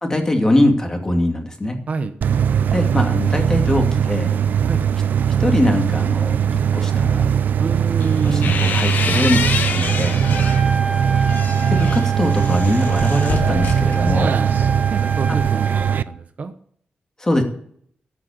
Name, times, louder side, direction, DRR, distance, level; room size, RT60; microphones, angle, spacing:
voice 1, 0.0-1.8 2.7-4.3 5.4-7.2 8.2-10.2 11.7-14.3 17.2-17.4, left 1 dB, 20° left, 3 dB, 2.4 m, -21 dB
sound 1, 2.2-16.0, right 8 dB, 70° right, 0.5 m, -19 dB
voice 2, 7.6-8.6 10.3-10.8 14.2-14.5 14.9-16.5, right 4 dB, 50° right, 9 dB, 1.0 m, -27 dB
sound 2, 8.0-10.7 11.1-14.5, left 6 dB, 75° left, 1.4 m, -27 dB
Trumpet, 10.2-16.0, right 4 dB, 20° right, 2.5 m, -28 dB
14.0 x 6.0 x 8.2 m, 0.62 s
wide cardioid pair, 110°, 3 cm